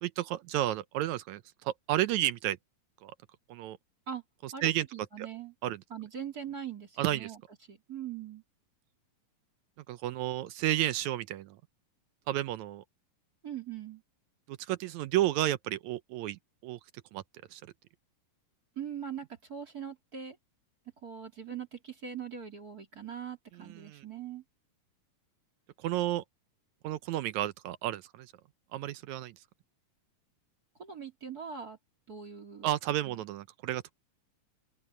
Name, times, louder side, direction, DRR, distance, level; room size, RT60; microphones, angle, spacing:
voice 1, 0.0-2.6 3.0-3.1 3.5-3.8 4.4-4.9 5.2-5.3 5.6-5.8 7.0-7.3 9.9-11.6 12.3-12.8 14.5-16.8 17.1-17.2 17.5-17.6 23.6-24.0 25.8-26.2 26.8-28.3 28.7-29.3 32.6-33.9, right 14 dB, 75° right, 1.8 m, -32 dB
voice 2, 4.5-5.5 5.9-7.4 7.7-8.4 13.4-14.0 18.7-20.4 21.0-24.4 30.8-31.8 32.1-32.7 33.0-33.2, right 8 dB, 30° right, 3.3 m, -41 dB
open air
omnidirectional pair, 3.7 m